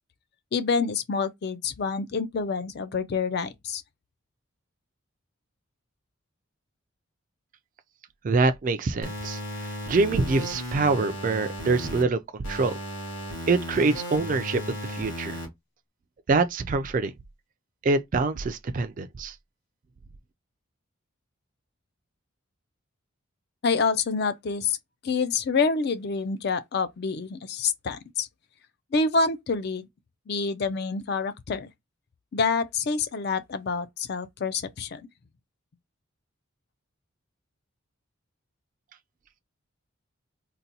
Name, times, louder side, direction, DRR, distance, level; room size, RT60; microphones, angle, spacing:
voice 1, 0.5-3.8 23.6-24.8 25.0-28.3 28.9-29.9 30.3-31.7 32.3-35.0, left 4 dB, 50° left, 0.4 m, -27 dB
voice 2, 8.2-12.7 13.5-14.6 14.9-15.4 16.3-17.1 17.8-19.3, right 3 dB, 40° right, 0.3 m, -25 dB
sound 1, 9.0-12.0 12.4-15.4, equal, 75° left, 1.9 m, -35 dB
3.9 x 2.2 x 2.7 m
head